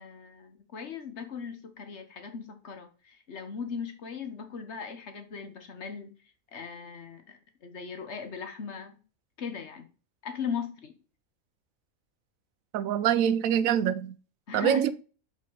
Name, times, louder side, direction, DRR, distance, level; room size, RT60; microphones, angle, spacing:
voice 1, 0.0-6.1 6.5-9.0 9.4-9.9 10.2-10.9 14.5-14.9, left 6 dB, 55° left, 1.4 m, -38 dB
voice 2, 12.7-14.1 14.5-14.9, right 9 dB, 85° right, 1.0 m, -25 dB
5.5 x 5.2 x 4.7 m
omnidirectional pair, 1.4 m